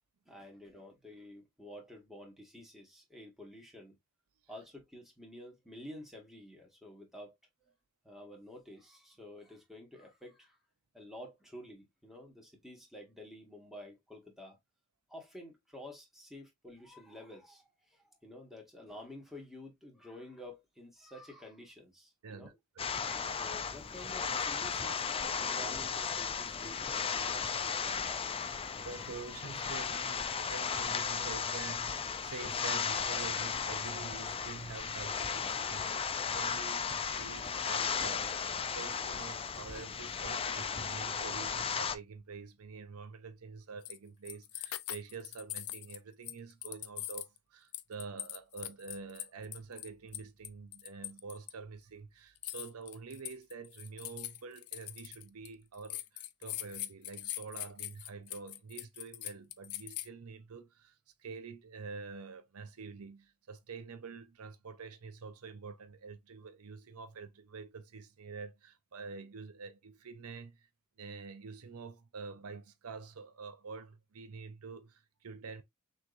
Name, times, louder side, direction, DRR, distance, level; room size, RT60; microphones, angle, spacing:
voice 1, 0.3-4.0 4.5-7.3 8.0-10.6 10.9-14.6 15.1-22.5 23.4-29.1 29.5-29.7, left 1 dB, ahead, 1.8 m, -51 dB
voice 2, 22.2-23.0 23.4-23.6 28.7-70.7 71.0-75.6, right 4 dB, 75° right, 0.6 m, -47 dB
sound 1, 22.8-42.0, left 6 dB, 25° left, 0.4 m, -35 dB
sound 2, 43.9-44.0 44.3-46.0 46.2-47.4 47.7-51.5 52.4-55.5 55.8-60.1, left 15 dB, 85° left, 0.5 m, -42 dB
6.1 x 3.1 x 2.5 m
head